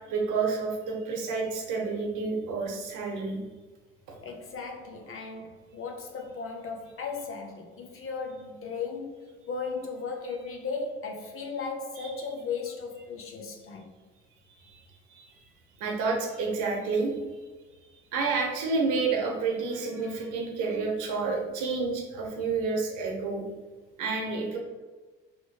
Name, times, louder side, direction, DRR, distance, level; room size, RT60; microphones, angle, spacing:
voice 1, 0.1-3.4 12.0-12.1 14.7-14.8 15.1-15.3 15.8-17.1 18.1-23.4 24.0-24.6, right 4 dB, 70° right, 0 dB, 1.0 m, -29 dB
voice 2, 4.2-13.9, left 4 dB, 40° left, 2 dB, 0.7 m, -36 dB
3.1 x 3.0 x 2.8 m, 1.3 s
hypercardioid pair, 55°, 32 cm